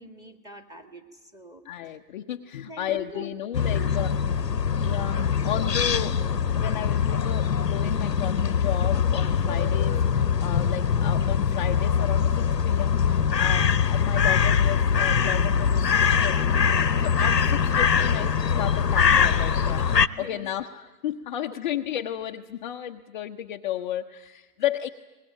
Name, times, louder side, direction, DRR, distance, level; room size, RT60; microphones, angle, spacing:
voice 1, 0.0-1.6 2.6-3.3 3.7-4.0 18.8-19.0 19.6-20.5 21.5-21.6, right 2 dB, 5° right, 7 dB, 1.9 m, -44 dB
voice 2, 1.6-4.1 4.8-19.9 20.2-24.9, left 11 dB, 30° left, 3 dB, 0.7 m, -33 dB
sound 1, 3.5-20.1, left 7 dB, 85° left, 1.0 m, -23 dB
23.5 x 20.5 x 9.0 m, 1.3 s
figure-of-eight pair, 125°, 49 cm